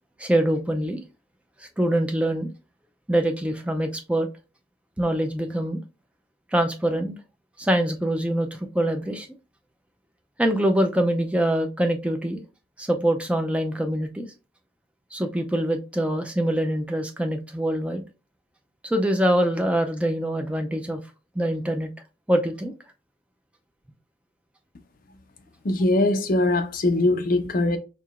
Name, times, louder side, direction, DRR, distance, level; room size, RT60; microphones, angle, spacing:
voice 1, 0.2-1.0 1.6-2.5 3.1-4.3 5.0-5.8 6.5-7.1 7.6-9.3 10.4-12.4 12.8-14.3 15.1-18.0 18.8-21.0 21.4-21.9 22.3-22.7, right 1 dB, 5° right, 0.4 m, -24 dB
voice 2, 25.6-27.8, left 2 dB, 45° left, 0.5 m, -21 dB
4.6 x 2.8 x 2.4 m
head